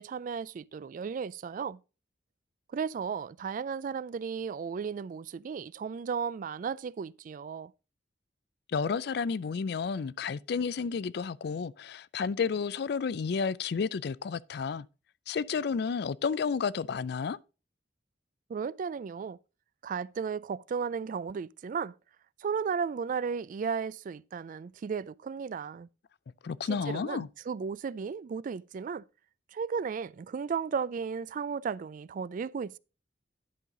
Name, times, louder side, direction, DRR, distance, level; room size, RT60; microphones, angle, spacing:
voice 1, 0.0-1.8 2.7-7.7 18.5-19.4 19.8-21.9 22.4-25.9 26.7-29.0 29.5-32.8, right 6 dB, 45° right, 0.3 m, -34 dB
voice 2, 8.7-14.8 15.3-17.4 26.4-27.3, left 5 dB, 60° left, 0.4 m, -31 dB
11.0 x 5.6 x 3.8 m
head